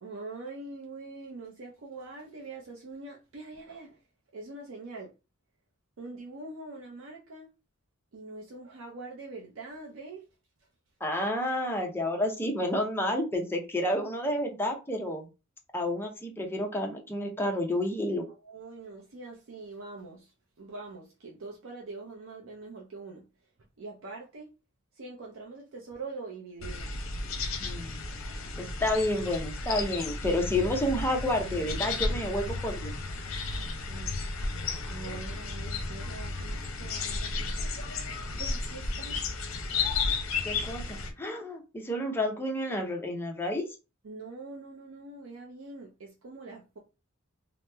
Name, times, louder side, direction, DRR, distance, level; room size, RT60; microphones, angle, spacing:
voice 1, 0.0-4.0 4.3-5.1 6.0-7.5 8.1-10.3 18.4-23.2 23.8-24.5 25.0-27.0 33.3-34.2 34.9-37.6 38.3-39.2 44.0-46.8, right 3 dB, 70° right, 0.6 m, -44 dB
voice 2, 11.0-15.3 15.7-18.2 27.6-28.0 28.6-33.0 40.4-43.6, left 1 dB, 10° left, 0.6 m, -30 dB
sound 1, 26.6-41.1, left 3 dB, 75° left, 0.7 m, -33 dB
2.9 x 2.0 x 3.3 m
head